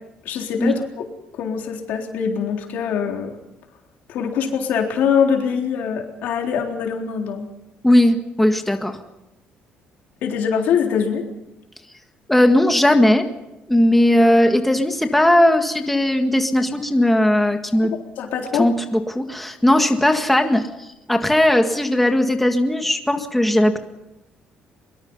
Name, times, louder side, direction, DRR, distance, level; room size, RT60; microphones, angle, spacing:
voice 1, 0.3-1.1 1.3-3.4 4.1-7.5 10.2-11.3 18.2-18.7, left 7 dB, 70° left, 2 dB, 3.7 m, -23 dB
voice 2, 7.8-9.0 12.3-13.3 13.7-17.9 18.5-20.7 21.1-23.8, left 1 dB, 5° left, 5 dB, 1.8 m, -17 dB
23.5 x 23.0 x 5.5 m, 0.93 s
cardioid pair, 170°, 3 cm